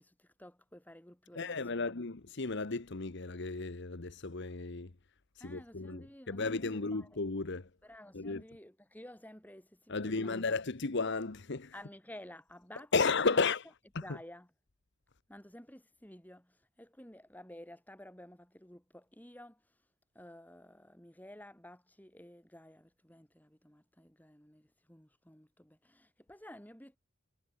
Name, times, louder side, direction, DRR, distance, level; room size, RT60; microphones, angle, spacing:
voice 1, 0.0-1.9 5.4-7.1 7.8-10.5 11.7-12.9 13.3-13.5 14.0-14.5 15.3-19.8 20.1-27.0, left 1 dB, 10° left, 3.4 m, -53 dB
voice 2, 1.3-4.9 5.4-7.7 8.1-8.4 9.9-11.7 12.9-13.7 13.9-14.2, left 4 dB, 55° left, 1.0 m, -34 dB
head